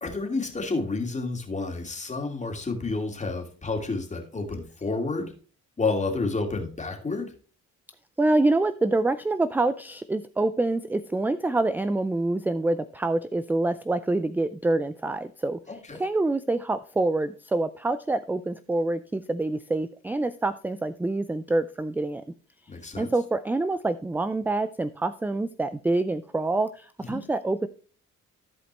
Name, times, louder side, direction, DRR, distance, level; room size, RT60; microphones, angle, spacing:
voice 1, 0.0-5.3 5.8-7.3 15.7-16.0 22.7-23.1 27.1-27.2, left 3 dB, 25° left, 2 dB, 2.5 m, -30 dB
voice 2, 8.2-22.2 23.0-27.7, right 2 dB, 5° right, 14 dB, 0.3 m, -26 dB
14.0 x 5.0 x 3.2 m, 0.40 s
cardioid pair, 90°, 30 cm